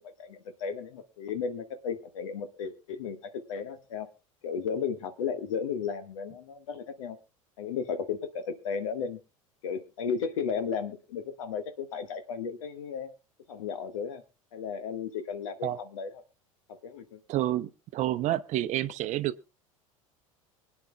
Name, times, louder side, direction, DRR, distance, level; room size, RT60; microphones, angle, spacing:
voice 1, 0.0-4.1 4.4-7.2 7.6-9.2 9.6-13.1 13.5-14.2 14.5-16.2 16.7-17.2, left 6 dB, 70° left, 10 dB, 1.5 m, -34 dB
voice 2, 17.3-19.4, right 14 dB, 45° right, 12 dB, 0.8 m, -29 dB
24.5 x 9.7 x 2.2 m, 0.29 s
figure-of-eight pair, 75°, 18 cm